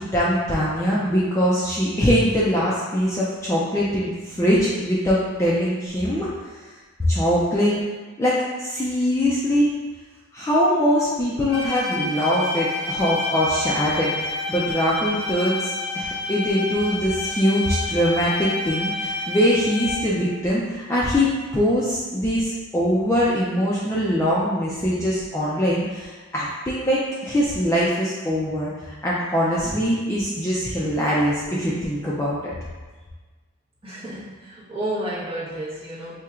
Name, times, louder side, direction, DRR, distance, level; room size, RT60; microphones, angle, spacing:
voice 1, 0.0-6.3 7.0-7.7 8.2-9.7 10.3-32.5, equal, 15° left, -7 dB, 0.3 m, -22 dB
Bowed string instrument, 11.5-20.2, left 2 dB, 65° left, 1.3 m, -29 dB
voice 2, 33.8-36.2, right 1 dB, 25° right, -9 dB, 0.9 m, -31 dB
4.3 x 2.8 x 2.4 m, 1.3 s
head